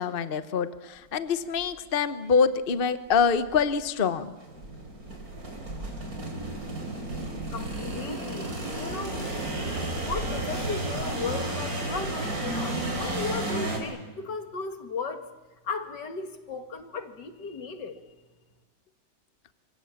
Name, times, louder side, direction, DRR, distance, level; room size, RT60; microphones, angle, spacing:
voice 1, 0.0-4.3, left 6 dB, 40° left, 12 dB, 1.1 m, -25 dB
sound 1, 1.6-1.7 2.4-2.5 3.1-3.7 4.4-13.8, right 2 dB, 55° right, 4.8 m, -32 dB
voice 2, 7.5-9.3 10.0-15.3 15.6-18.0, left 4 dB, 75° left, 8 dB, 2.6 m, -36 dB
27.0 x 24.5 x 7.2 m, 1.2 s
omnidirectional pair, 1.9 m